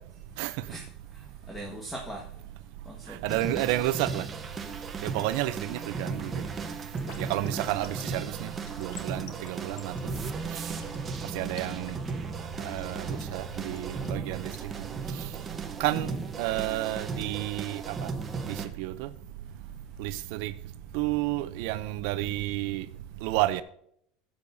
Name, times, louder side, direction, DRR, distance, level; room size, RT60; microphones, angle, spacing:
voice 1, 0.6-2.3 2.8-3.4 11.2-12.0 15.9-16.2, right 1 dB, 5° left, 1.4 m, -42 dB
voice 2, 3.2-4.2 5.0-6.3 7.2-8.2 8.8-9.9 11.3-11.9 12.6-14.5 15.8-16.1 16.4-17.9 18.8-19.1 20.0-20.5 20.9-22.8 23.2-23.6, right 16 dB, 70° right, 0.5 m, -30 dB
sound 1, 3.3-18.7, right 4 dB, 20° right, 1.0 m, -36 dB
sound 2, 6.8-14.8, left 7 dB, 75° left, 1.4 m, -49 dB
13.5 x 8.5 x 2.7 m
supercardioid pair, 145°, 0 cm